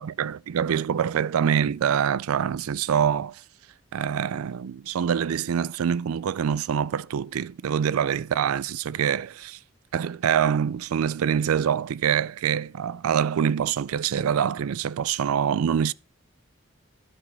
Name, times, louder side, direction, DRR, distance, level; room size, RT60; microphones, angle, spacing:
voice 1, 0.0-3.4 3.9-9.6 9.9-15.9, right 8 dB, 80° right, 0.4 m, -25 dB
13.0 x 4.4 x 5.3 m
head